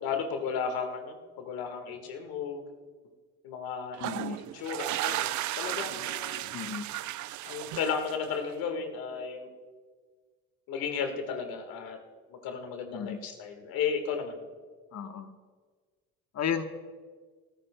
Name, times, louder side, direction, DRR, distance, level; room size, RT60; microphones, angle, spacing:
voice 1, 0.0-2.6 3.4-4.0 4.3-6.5 7.4-9.5 10.7-12.0 12.3-14.4, left 6 dB, 70° left, 5 dB, 1.7 m, -34 dB
sound 1, 3.9-8.5, right 15 dB, 55° right, 0.5 m, -34 dB
voice 2, 4.0-4.4 6.5-6.9 12.9-13.2 14.9-15.3 16.3-16.6, left 8 dB, 45° left, 8 dB, 1.2 m, -33 dB
22.5 x 13.5 x 2.3 m, 1.5 s
supercardioid pair, 65°, 37 cm